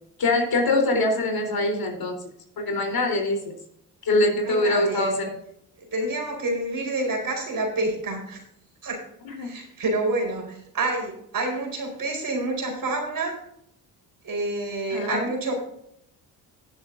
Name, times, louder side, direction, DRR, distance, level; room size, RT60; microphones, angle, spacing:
voice 1, 0.2-2.2 2.6-3.6 4.0-5.3 9.2-9.5 14.9-15.3, left 2 dB, 50° left, 2 dB, 3.8 m, -23 dB
voice 2, 4.4-5.2 5.8-8.4 8.8-9.0 9.4-13.3 14.2-15.5, right 2 dB, 45° right, 1 dB, 4.4 m, -28 dB
19.5 x 7.1 x 2.6 m, 0.73 s
hypercardioid pair, 55°, 47 cm